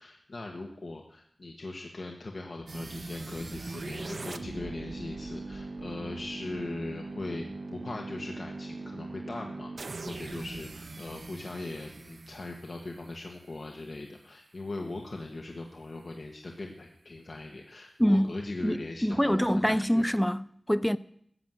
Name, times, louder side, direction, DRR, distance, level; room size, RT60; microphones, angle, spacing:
voice 1, 0.0-7.5 7.7-20.0, left 2 dB, 65° left, 1.3 m, -40 dB
sound 1, 2.7-13.6, right 3 dB, 65° right, 0.7 m, -41 dB
voice 2, 18.6-21.0, equal, 5° left, 0.5 m, -25 dB
14.5 x 7.9 x 7.6 m
wide cardioid pair, 60°, 0 cm